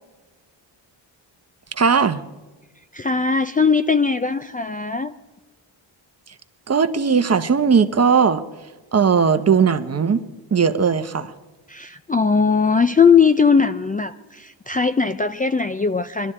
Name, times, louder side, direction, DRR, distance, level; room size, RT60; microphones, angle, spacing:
voice 1, 1.7-2.2 6.7-8.4 8.9-10.2 10.5-11.3, right 6 dB, 35° right, 0.9 m, -18 dB
voice 2, 2.9-5.1 11.7-16.3, left 5 dB, 20° left, 0.4 m, -19 dB
21.0 x 12.5 x 4.4 m
cardioid pair, 95°, 45 cm